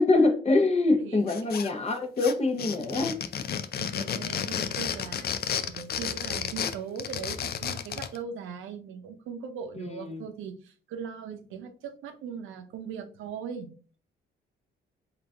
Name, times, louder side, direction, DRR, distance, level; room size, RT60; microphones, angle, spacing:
voice 1, 0.0-3.2 9.8-10.2, left 3 dB, 35° left, 0.8 m, -24 dB
voice 2, 0.9-1.3 3.8-5.3 5.7-13.7, right 7 dB, 85° right, 0.7 m, -39 dB
sound 1, 1.3-1.9 2.2-8.2, left 8 dB, 50° left, 0.4 m, -32 dB
3.8 x 2.5 x 3.5 m
cardioid pair, 90°, 20 cm